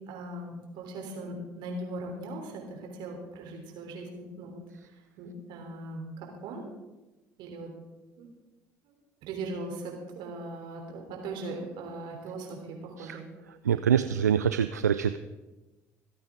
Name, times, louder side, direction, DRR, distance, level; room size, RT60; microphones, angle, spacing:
voice 1, 0.1-4.6 5.2-6.7 7.4-7.7 8.2-8.3 8.8-8.9 9.2-13.3, right 2 dB, 65° right, 1 dB, 3.4 m, -39 dB
voice 2, 13.7-15.2, right 8 dB, 85° right, 11 dB, 0.3 m, -25 dB
26.5 x 8.9 x 3.7 m, 1.1 s
figure-of-eight pair, 55°, 9 cm